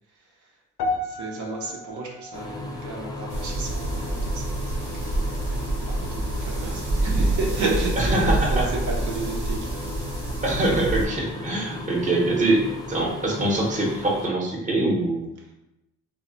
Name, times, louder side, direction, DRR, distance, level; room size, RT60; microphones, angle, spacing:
sound 1, 0.8-5.2 5.4-5.8 6.5-6.6, left 2 dB, 70° left, 0.5 m, -35 dB
voice 1, 1.0-4.9 5.2-9.9, right 3 dB, 65° right, -2 dB, 0.6 m, -32 dB
sound 2, 2.3-14.3, left 2 dB, 15° left, 0.4 m, -36 dB
sound 3, 3.3-11.1, right 2 dB, 85° right, 1.0 m, -27 dB
voice 2, 8.0-8.7 10.4-15.3, right 2 dB, 25° right, -2 dB, 0.7 m, -24 dB
2.1 x 2.0 x 3.7 m, 0.90 s
cardioid pair, 100°, 31 cm